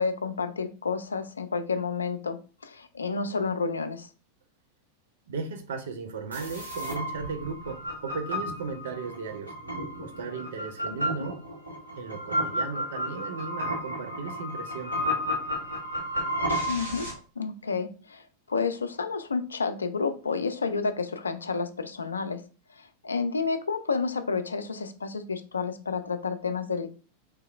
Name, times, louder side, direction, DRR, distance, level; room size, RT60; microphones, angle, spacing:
voice 1, 0.0-2.4 2.6-4.1 11.2-11.3 16.7-17.1 17.4-18.2 18.5-22.4 22.8-26.9, left 5 dB, 75° left, 10 dB, 0.3 m, -30 dB
voice 2, 5.3-9.5 10.0-11.4 12.0-15.0, right 4 dB, 60° right, 6 dB, 0.6 m, -36 dB
sound 1, 6.3-17.1, equal, 85° right, 0.9 m, -32 dB
3.2 x 2.9 x 2.3 m, 0.36 s
figure-of-eight pair, 90°, 0 cm